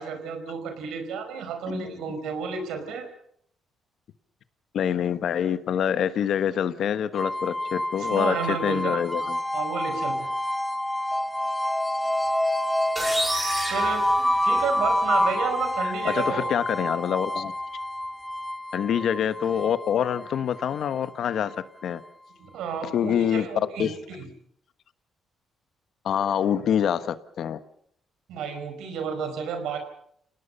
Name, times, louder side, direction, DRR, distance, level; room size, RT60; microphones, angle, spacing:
voice 1, 0.0-3.1 8.0-9.1 9.5-10.3 13.6-16.5 22.4-24.3 28.3-29.8, right 6 dB, 85° right, 7 dB, 5.0 m, -32 dB
voice 2, 1.7-2.0 4.7-9.4 15.8-17.5 18.7-21.5 21.8-22.0 22.9-23.5 23.8-23.9 26.0-27.6, left 9 dB, 70° left, 12 dB, 1.2 m, -26 dB
sound 1, 7.1-22.1, left 1 dB, 5° left, 1.2 m, -28 dB
sound 2, 13.0-14.9, right 1 dB, 15° right, 5.4 m, -30 dB
29.0 x 18.5 x 5.5 m, 0.67 s
cardioid pair, 90°, 0 cm